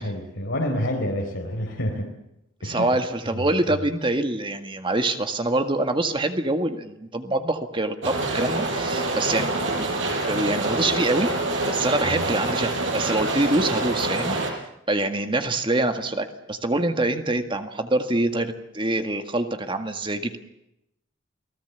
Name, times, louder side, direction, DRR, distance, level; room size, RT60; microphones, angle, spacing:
voice 1, 0.0-2.1 2.6-2.9 3.3-3.4 12.0-12.3, left 1 dB, 80° left, -1 dB, 4.2 m, -28 dB
voice 2, 2.6-9.5 9.8-11.3 11.7-14.4 14.9-20.4, right 2 dB, 25° right, 7 dB, 1.9 m, -25 dB
sound 1, 8.0-14.5, right 2 dB, 70° right, 6.5 m, -26 dB
29.5 x 19.0 x 8.3 m, 0.85 s
head